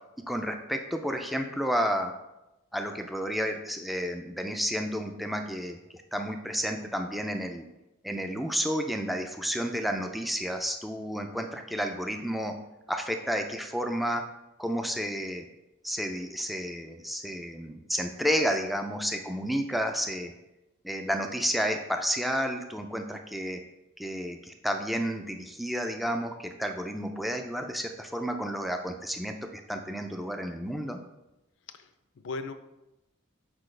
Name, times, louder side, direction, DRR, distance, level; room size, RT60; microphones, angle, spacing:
voice 1, 0.3-2.1 2.7-7.7 8.0-12.5 12.9-14.2 14.6-15.5 15.8-20.3 20.8-23.6 24.0-31.0, equal, ahead, 4 dB, 0.3 m, -31 dB
voice 2, 31.7-32.5, left 3 dB, 60° left, 10 dB, 0.5 m, -38 dB
6.2 x 4.8 x 3.2 m, 0.95 s
head